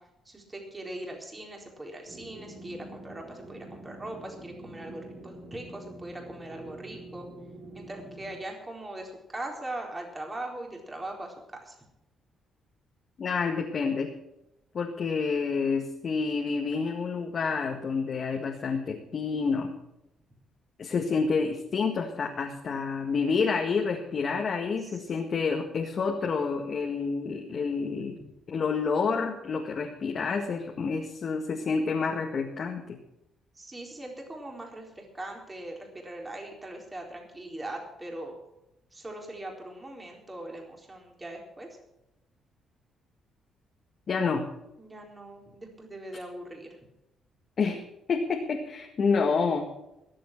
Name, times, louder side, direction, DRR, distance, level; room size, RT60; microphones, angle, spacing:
voice 1, 0.3-7.3 7.7-11.3 11.6-11.7 24.8-25.1 33.5-38.3 38.9-41.7 44.8-46.7, right 1 dB, 20° right, 1 dB, 4.1 m, -40 dB
sound 1, 2.0-8.4, right 1 dB, 75° right, 4.5 m, -46 dB
voice 2, 13.2-14.1 14.7-19.7 20.8-28.2 28.5-33.0 44.1-44.4 47.6-47.8 48.1-49.6, left 5 dB, 50° left, 0 dB, 1.8 m, -28 dB
21.5 x 7.7 x 6.0 m, 0.87 s
cardioid pair, 90°, 0 cm